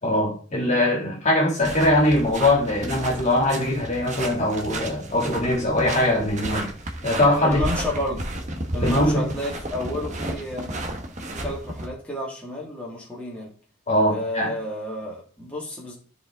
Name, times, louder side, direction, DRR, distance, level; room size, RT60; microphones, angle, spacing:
voice 1, 0.0-6.7 7.0-7.6 8.8-9.3 13.9-14.5, left 1 dB, 35° left, -1 dB, 2.9 m, -21 dB
sound 1, 1.6-11.9, right 1 dB, 35° right, 1.2 m, -32 dB
voice 2, 7.4-8.3 8.7-10.7 11.3-13.5 14.1-16.0, left 1 dB, 5° left, -5 dB, 2.3 m, -31 dB
13.0 x 4.9 x 3.9 m, 0.41 s
head